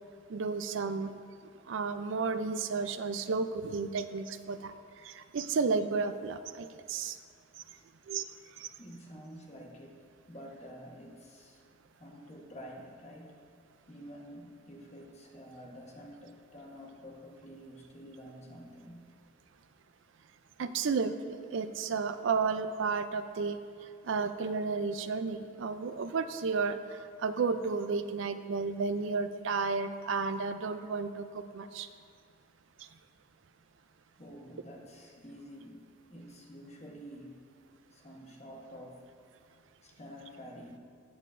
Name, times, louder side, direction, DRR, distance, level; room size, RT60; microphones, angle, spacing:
voice 1, 0.3-1.1 1.7-4.7 5.0-7.2 8.1-8.2 8.6-8.7 20.6-23.6 24.0-31.9 32.8-32.9, right 4 dB, 60° right, 10 dB, 0.4 m, -32 dB
voice 2, 8.8-10.0 10.3-11.6 12.0-13.3 13.9-19.0 34.2-37.4 37.9-39.0 39.8-40.8, equal, 30° left, -1 dB, 1.1 m, -49 dB
18.0 x 6.6 x 2.6 m, 2.3 s
head